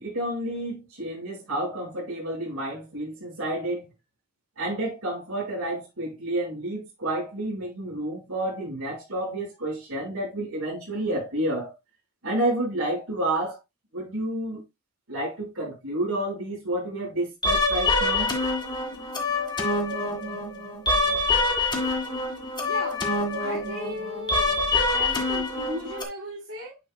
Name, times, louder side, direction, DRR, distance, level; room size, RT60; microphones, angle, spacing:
voice 1, 0.0-3.9 4.6-11.7 12.2-13.6 13.9-14.6 15.1-18.3, right 1 dB, 90° right, 5.3 m, -30 dB
sound 1, 17.4-26.0, left 2 dB, 20° left, 1.9 m, -26 dB
voice 2, 22.6-23.0 23.4-24.5 24.9-26.8, equal, 65° right, 3.3 m, -36 dB
9.9 x 5.3 x 2.3 m
head